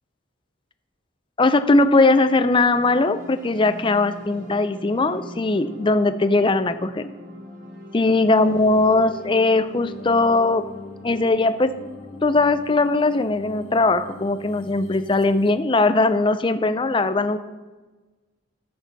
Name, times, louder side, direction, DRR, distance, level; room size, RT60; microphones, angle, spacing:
voice 1, 1.4-7.1 7.9-10.7 11.0-11.8 12.2-17.4, left 2 dB, 25° left, 11 dB, 0.5 m, -19 dB
sound 1, 2.4-14.0, equal, 40° right, 1.9 m, -43 dB
sound 2, 8.4-15.5, left 3 dB, 85° left, 1.1 m, -43 dB
14.0 x 6.6 x 4.1 m, 1.2 s
head